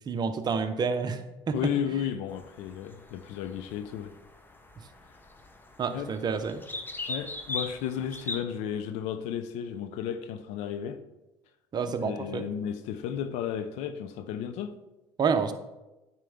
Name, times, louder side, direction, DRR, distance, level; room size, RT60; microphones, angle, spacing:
voice 1, 0.1-1.2 1.5-1.7 5.8-6.6 11.7-12.4 15.2-15.5, right 5 dB, 35° right, 0.7 m, -28 dB
voice 2, 1.5-4.1 5.9-6.1 7.1-11.0 11.9-14.8, left 9 dB, 70° left, 0.5 m, -33 dB
sound 1, 2.3-8.4, left 2 dB, 15° left, 0.8 m, -40 dB
9.1 x 4.4 x 3.6 m
supercardioid pair, 80°, 12 cm